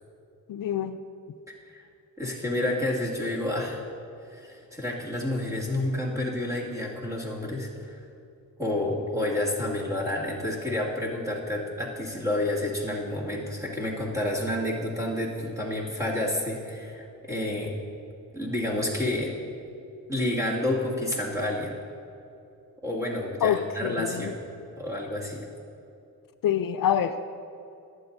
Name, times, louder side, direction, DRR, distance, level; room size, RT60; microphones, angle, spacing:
voice 1, 0.5-1.0 23.4-24.3 26.4-27.2, left 9 dB, 75° left, 9 dB, 0.5 m, -26 dB
voice 2, 2.2-3.9 4.3-8.0 8.6-17.7 18.3-19.3 20.1-21.8 22.8-24.4 24.8-25.4, left 1 dB, 10° right, -5 dB, 2.2 m, -29 dB
18.0 x 11.5 x 2.7 m, 2.7 s
wide cardioid pair, 135°, 35 cm